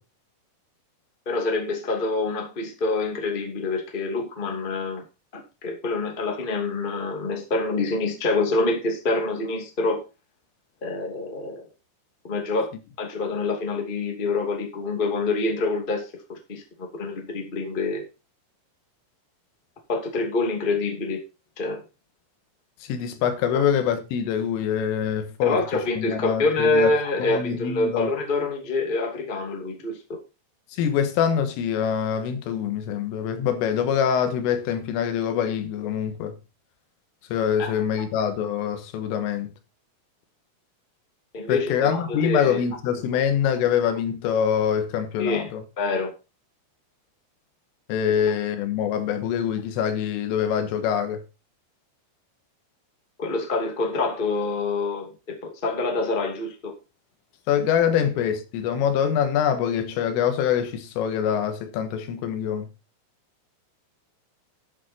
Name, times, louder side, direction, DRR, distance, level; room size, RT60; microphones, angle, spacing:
voice 1, 1.2-5.0 5.3-10.0 10.8-11.6 12.2-12.7 13.0-18.0 19.9-21.2 21.6-21.8 23.5-23.6 25.4-30.2 37.6-37.7 41.3-42.6 45.2-45.5 45.8-46.1 53.2-56.7, left 3 dB, 25° left, 1.1 m, -26 dB
voice 2, 22.8-26.9 27.3-28.1 30.7-36.4 37.3-39.5 41.5-45.6 47.9-51.2 57.5-62.7, left 8 dB, 80° left, 3.9 m, -24 dB
12.5 x 7.5 x 4.4 m
omnidirectional pair, 5.8 m